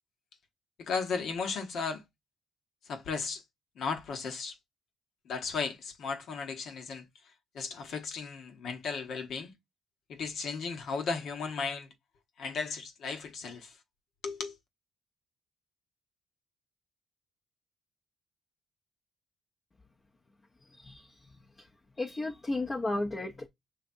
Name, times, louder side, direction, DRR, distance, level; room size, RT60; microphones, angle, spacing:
voice 1, 0.8-2.0 2.9-3.4 3.7-4.6 5.2-7.1 7.5-9.5 10.1-11.9 12.4-13.8 14.2-14.5, left 5 dB, 70° left, 1.1 m, -35 dB
voice 2, 20.7-21.7 22.0-23.5, left 2 dB, 30° left, 0.8 m, -34 dB
5.8 x 3.2 x 2.6 m
cardioid pair, 90°, 0 cm